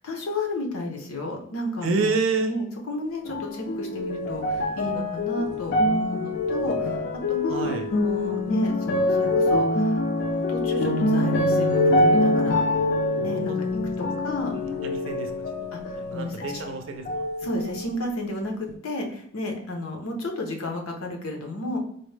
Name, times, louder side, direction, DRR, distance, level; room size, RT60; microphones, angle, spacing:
voice 1, 0.0-7.0 7.3-10.0 10.5-12.8 13.2-13.5 14.0-14.5 15.7-16.3 17.4-18.5 18.8-21.8, left 1 dB, 85° left, 2 dB, 0.7 m, -32 dB
voice 2, 1.8-2.5 7.5-7.9 13.5-13.6 14.5-15.3 15.6-15.7 16.0-17.3, right 4 dB, 65° right, 6 dB, 0.5 m, -28 dB
sound 1, 3.3-16.7 17.1-18.0 18.7-18.8, left 1 dB, 50° left, 0.4 m, -25 dB
4.1 x 2.0 x 3.2 m, 0.67 s
head